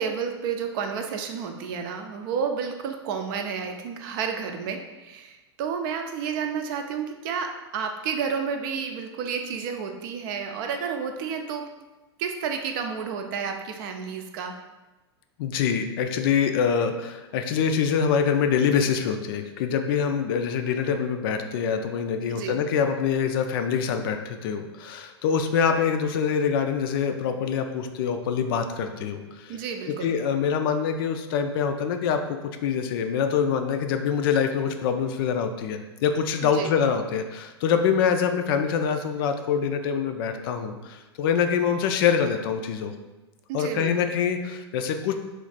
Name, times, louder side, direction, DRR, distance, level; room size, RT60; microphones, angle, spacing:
voice 1, 0.0-11.7 12.2-14.5 22.3-22.6 29.5-30.1 36.5-36.7 43.5-43.9, right 6 dB, 50° right, 5 dB, 0.5 m, -31 dB
voice 2, 15.4-29.5 29.9-42.9 43.5-45.2, left 7 dB, 55° left, 6 dB, 0.4 m, -25 dB
3.2 x 2.5 x 4.0 m, 1.1 s
hypercardioid pair, 100°, 14 cm